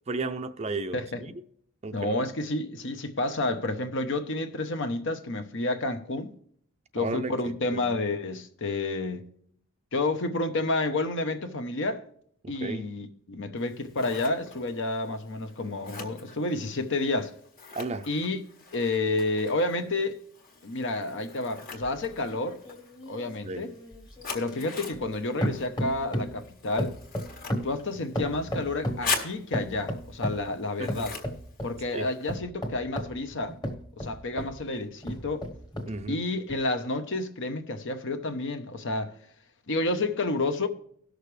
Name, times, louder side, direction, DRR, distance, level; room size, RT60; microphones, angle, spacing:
voice 1, 0.1-1.4 1.8-2.3 7.0-8.0 12.4-12.9 17.7-18.1 23.4-23.7 30.8-31.1 31.9-32.1 35.8-36.2, right 3 dB, 30° right, 0.5 m, -34 dB
voice 2, 1.9-6.3 6.9-9.2 9.9-12.0 12.5-17.3 18.1-18.4 18.7-20.2 20.6-22.6 23.1-23.7 24.3-27.0 27.6-31.1 31.6-33.6 34.0-35.5 36.1-39.1 39.7-40.7, left 2 dB, 55° left, 0.9 m, -30 dB
Scissors, 13.6-32.4, left 4 dB, 40° left, 1.7 m, -42 dB
sound 1, 21.8-25.1 25.4-26.4 26.8-29.1 29.5-30.5 30.9-31.8 32.3-34.6 35.0-36.0 36.5-36.6, equal, 20° left, 1.3 m, -34 dB
17.5 x 6.5 x 3.3 m
head